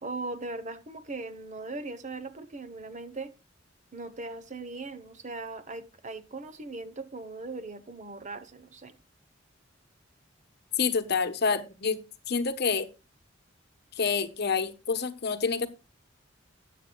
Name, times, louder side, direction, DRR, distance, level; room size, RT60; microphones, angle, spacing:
voice 1, 0.0-3.3 3.9-9.0, right 3 dB, 40° right, 0.9 m, -39 dB
voice 2, 10.8-12.0 12.3-12.9 14.0-15.7, left 5 dB, 55° left, 1.0 m, -27 dB
14.5 x 9.4 x 2.3 m
head